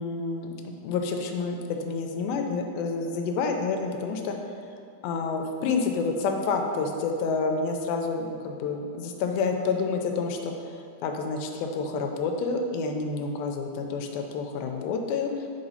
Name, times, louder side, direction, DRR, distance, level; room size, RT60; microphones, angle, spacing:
voice 1, 0.0-4.4 5.0-15.5, left 4 dB, 90° left, 3 dB, 2.4 m, -29 dB
5.4 x 4.0 x 5.5 m, 2.5 s
omnidirectional pair, 4.1 m